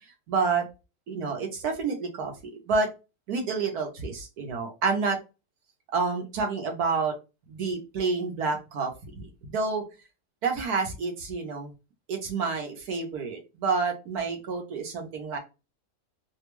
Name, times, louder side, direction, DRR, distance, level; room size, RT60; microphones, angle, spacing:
voice 1, 0.3-0.6 1.1-2.9 3.3-5.2 5.9-7.1 7.5-9.9 10.4-11.7 12.1-15.4, right 4 dB, 80° right, 3 dB, 1.6 m, -29 dB
3.5 x 2.3 x 3.0 m, 0.27 s
omnidirectional pair, 1.6 m